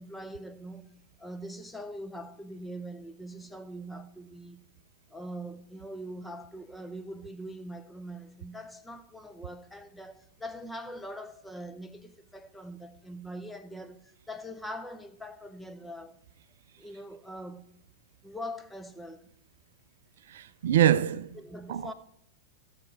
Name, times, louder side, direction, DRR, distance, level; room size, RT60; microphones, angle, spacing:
voice 1, 0.0-4.6 5.1-16.2 16.8-17.7 18.2-19.3 21.3-21.9, equal, 5° left, 0.8 m, -42 dB
voice 2, 20.3-21.4 21.7-21.9, right 11 dB, 60° right, 0.4 m, -25 dB
15.5 x 6.5 x 4.5 m
figure-of-eight pair, 95°, 0 cm